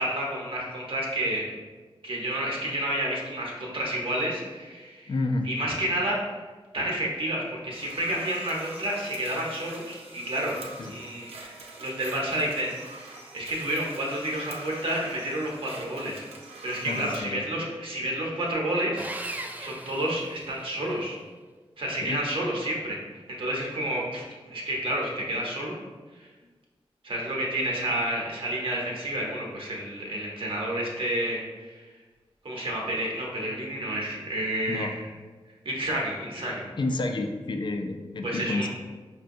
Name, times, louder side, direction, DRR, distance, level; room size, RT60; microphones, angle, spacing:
voice 1, 0.0-1.5 2.0-5.1 5.4-6.4 6.7-10.6 10.9-16.2 16.6-19.1 19.6-21.2 21.8-23.0 23.3-25.7 26.2-26.3 27.0-31.8 32.4-35.0 35.6-36.6 38.2-38.7, right 1 dB, 60° right, -3 dB, 0.9 m, -30 dB
voice 2, 5.1-5.5 10.8-10.9 16.8-17.5 21.9-22.2 34.7-35.0 36.8-38.7, left 2 dB, 50° left, 5 dB, 0.4 m, -30 dB
sound 1, 7.7-17.2, right 3 dB, 80° right, 0.5 m, -44 dB
Sawing, 19.0-20.9, right 2 dB, 15° right, 0.3 m, -38 dB
4.9 x 2.2 x 2.6 m, 1.4 s
cardioid pair, 55°, 10 cm